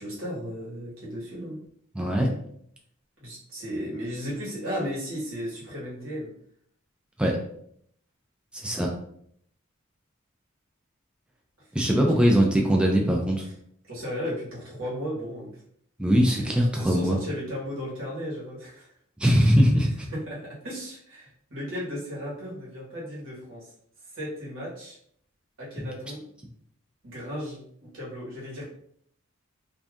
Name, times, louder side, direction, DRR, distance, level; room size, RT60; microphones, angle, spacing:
voice 1, 0.0-1.6 3.2-6.3 11.6-11.7 11.9-12.2 13.4-13.5 13.8-15.6 16.3-18.9 20.1-23.7 24.0-25.0 25.6-26.2 27.0-28.6, equal, 75° right, -6 dB, 1.3 m, -35 dB
voice 2, 2.0-2.3 7.2-7.4 8.6-8.9 11.7-13.4 16.0-17.2 19.2-20.1, equal, 5° right, 0 dB, 0.4 m, -21 dB
2.6 x 2.4 x 3.4 m, 0.67 s
head